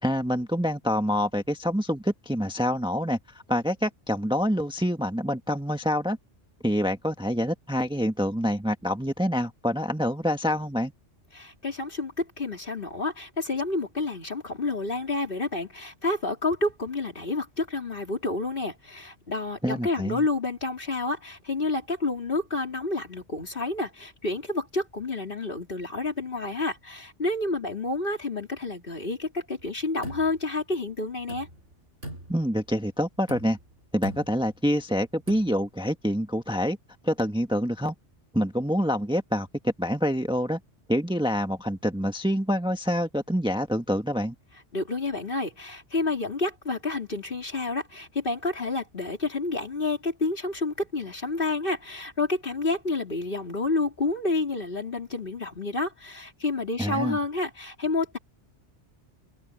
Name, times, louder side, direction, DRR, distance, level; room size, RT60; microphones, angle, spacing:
voice 1, 0.0-3.2 3.5-6.2 6.6-10.9 19.6-20.2 32.3-33.6 33.9-36.8 37.0-37.9 38.3-40.6 40.9-44.3 56.8-57.2, equal, 5° right, 1.4 m, -26 dB
voice 2, 11.3-31.5 44.7-58.2, left 3 dB, 50° left, 3.6 m, -29 dB
sound 1, 29.6-30.8 31.1-31.7 32.0-32.7 33.2-33.7 34.0-34.5 35.1-35.7, right 1 dB, 90° right, 8.0 m, -42 dB
open air
omnidirectional pair, 1.2 m